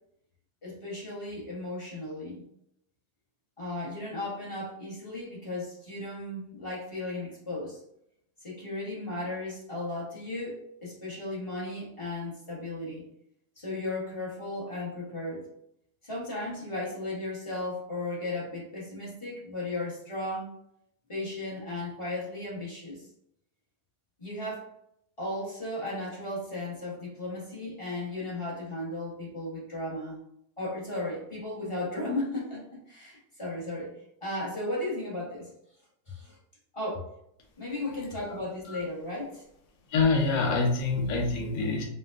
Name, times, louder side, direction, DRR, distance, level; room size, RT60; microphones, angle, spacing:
voice 1, 0.6-2.4 3.6-7.8 8.4-13.1 13.6-15.5 16.0-20.6 21.1-23.1 24.2-24.7 25.2-30.2 30.6-35.5 36.1-36.4 36.7-37.1 37.6-39.5, left 2 dB, 25° left, -6 dB, 0.7 m, -35 dB
voice 2, 39.9-41.8, left 3 dB, 60° left, 0 dB, 1.0 m, -26 dB
4.3 x 2.2 x 2.4 m, 0.74 s
omnidirectional pair, 1.9 m